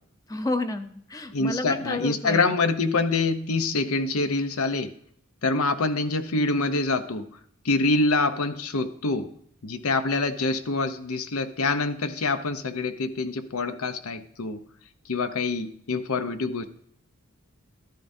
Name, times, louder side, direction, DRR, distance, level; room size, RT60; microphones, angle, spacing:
voice 1, 0.3-2.4, left 2 dB, 15° left, 8 dB, 0.6 m, -30 dB
voice 2, 1.3-4.9 5.4-7.3 7.6-9.3 9.6-14.6 15.1-16.7, left 3 dB, 85° left, 10 dB, 0.8 m, -25 dB
12.5 x 10.5 x 2.7 m, 0.66 s
head